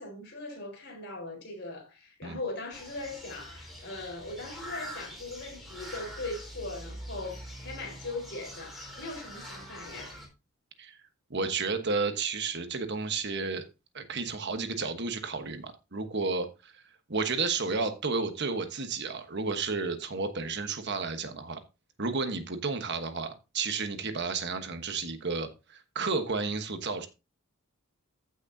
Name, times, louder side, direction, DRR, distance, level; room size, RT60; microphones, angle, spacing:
voice 1, 0.0-10.2, left 2 dB, 50° left, 4.3 m, -40 dB
sound 1, 2.7-10.3, equal, ahead, 3.9 m, -44 dB
voice 2, 11.3-13.7 13.9-16.8 17.1-21.6 22.0-27.1, right 4 dB, 50° right, 1.2 m, -32 dB
15.0 x 6.3 x 2.7 m
head